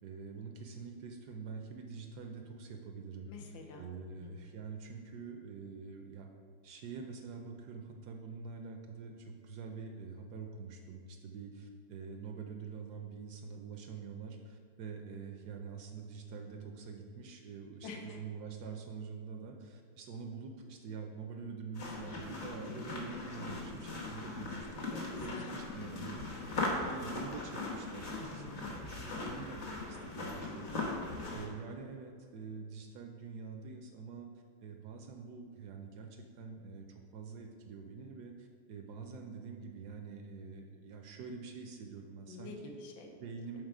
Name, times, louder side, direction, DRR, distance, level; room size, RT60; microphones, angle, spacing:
voice 1, 0.0-3.3 3.8-6.3 6.6-34.3 34.6-42.5 43.2-43.6, right 5 dB, 70° right, 4 dB, 1.0 m, -46 dB
voice 2, 3.2-4.3 17.8-18.2 24.9-25.6 28.1-28.5 42.3-43.1, left 3 dB, 90° left, 2 dB, 1.6 m, -48 dB
sound 1, 21.7-31.5, left 2 dB, 45° left, 1.1 m, -39 dB
6.6 x 3.9 x 4.8 m, 2.2 s
omnidirectional pair, 2.0 m